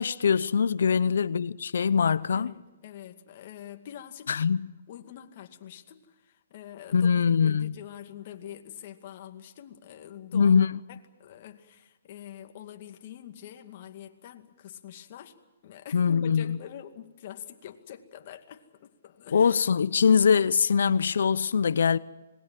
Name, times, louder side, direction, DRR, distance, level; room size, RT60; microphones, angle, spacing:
voice 1, 0.0-2.5 4.3-4.7 6.9-7.7 10.3-10.7 15.9-16.6 19.3-22.0, left 6 dB, 75° left, 0.7 m, -23 dB
voice 2, 2.3-4.5 4.9-15.4 15.6-19.5, left 10 dB, 45° left, 2.3 m, -45 dB
26.0 x 21.0 x 7.6 m
hypercardioid pair, 145°, 0 cm